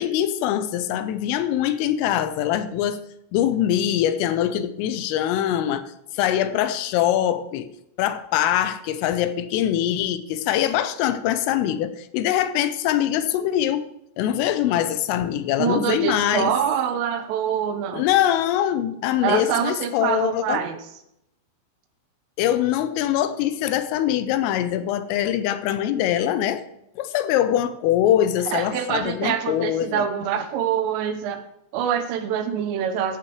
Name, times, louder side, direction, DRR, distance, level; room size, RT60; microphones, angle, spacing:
voice 1, 0.0-3.0 3.3-7.7 8.0-13.8 14.2-16.5 17.9-20.6 22.4-26.6 27.0-30.0, left 11 dB, 85° left, 3.4 m, -23 dB
voice 2, 15.6-18.0 19.2-20.8 28.5-31.4 31.7-33.2, right 8 dB, 80° right, 3.5 m, -25 dB
15.5 x 12.0 x 3.1 m
omnidirectional pair, 5.9 m